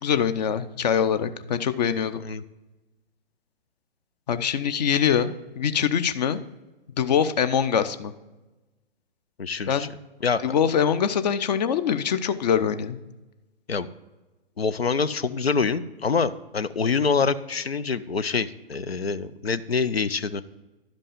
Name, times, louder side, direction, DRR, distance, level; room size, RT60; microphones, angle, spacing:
voice 1, 0.0-2.2 4.3-6.4 7.0-8.1 9.7-9.9 10.4-13.0, left 8 dB, 45° left, 12 dB, 0.6 m, -23 dB
voice 2, 9.4-9.9 10.2-10.4 13.7-13.9 14.6-20.4, left 5 dB, 85° left, 14 dB, 0.6 m, -25 dB
11.5 x 5.3 x 5.1 m, 1.1 s
figure-of-eight pair, 115°, 30 cm